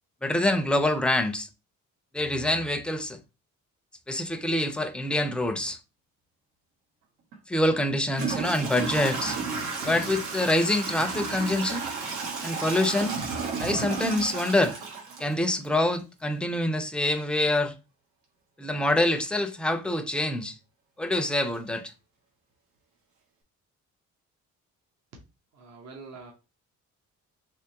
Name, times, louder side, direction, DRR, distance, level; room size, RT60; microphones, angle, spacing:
voice 1, 0.2-1.5 2.1-3.2 4.1-5.8 7.5-9.4 9.8-11.8 12.4-13.2 13.6-14.8 15.2-17.7 18.6-20.6 21.0-21.9, left 1 dB, 5° left, 0.5 m, -26 dB
Toilet flush / Trickle dribble, 7.3-7.4 8.1-15.9, right 4 dB, 85° right, 1.3 m, -32 dB
voice 2, 25.5-26.3, right 4 dB, 60° right, 1.0 m, -45 dB
3.5 x 3.1 x 2.8 m
cardioid pair, 90°, 30 cm